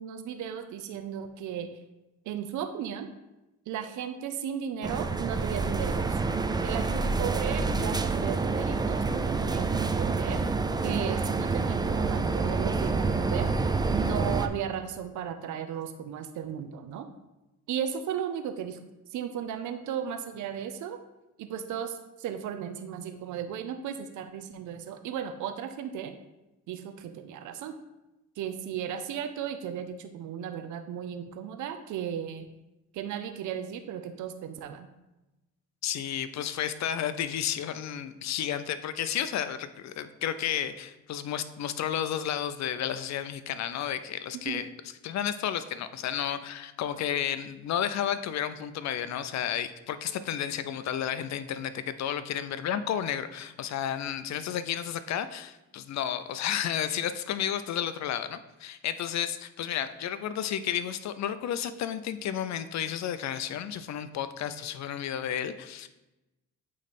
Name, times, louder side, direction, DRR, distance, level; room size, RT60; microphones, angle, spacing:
voice 1, 0.0-1.7 2.3-3.1 3.7-6.2 6.6-10.4 10.8-13.5 13.9-17.1 17.7-18.8 19.1-21.0 21.4-26.1 26.7-27.7 28.4-32.5 32.9-34.9 44.4-44.6, right 9 dB, 75° right, 7 dB, 0.6 m, -35 dB
sound 1, 4.8-14.5, right 4 dB, 15° right, 0.4 m, -28 dB
voice 2, 35.8-44.7 45.0-65.9, left 9 dB, 65° left, 12 dB, 0.6 m, -32 dB
8.5 x 3.2 x 4.2 m, 0.99 s
cardioid pair, 90°, 30 cm